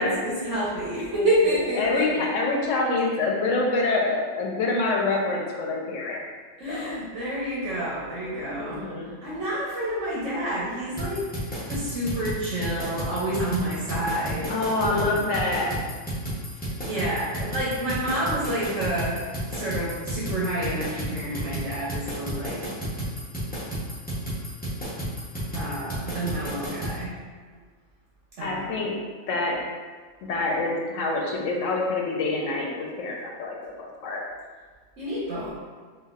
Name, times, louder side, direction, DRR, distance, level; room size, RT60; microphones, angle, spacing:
voice 1, 0.0-2.3 6.6-8.8 9.2-11.2 11.7-14.5 14.9-15.1 16.8-19.2 19.5-22.6 25.5-27.1 28.4-28.8 35.0-35.5, right 1 dB, 75° right, -7 dB, 1.1 m, -28 dB
voice 2, 1.8-6.2 6.7-6.9 8.4-9.1 14.5-15.8 28.4-28.9 29.3-29.6 30.2-34.2, left 3 dB, 85° left, -1 dB, 1.0 m, -26 dB
sound 1, 11.0-27.0, right 1 dB, 10° left, 0.8 m, -32 dB
4.0 x 2.6 x 2.4 m, 1.5 s
omnidirectional pair, 1.3 m